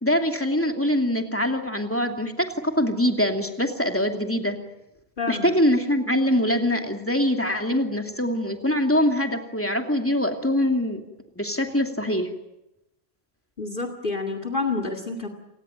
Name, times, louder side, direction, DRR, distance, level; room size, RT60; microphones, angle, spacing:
voice 1, 0.0-4.6 5.3-11.0 11.4-12.3, left 1 dB, 10° left, 4 dB, 2.7 m, -23 dB
voice 2, 13.6-15.3, left 3 dB, 55° left, 7 dB, 2.5 m, -28 dB
29.0 x 18.0 x 9.1 m, 0.93 s
omnidirectional pair, 1.1 m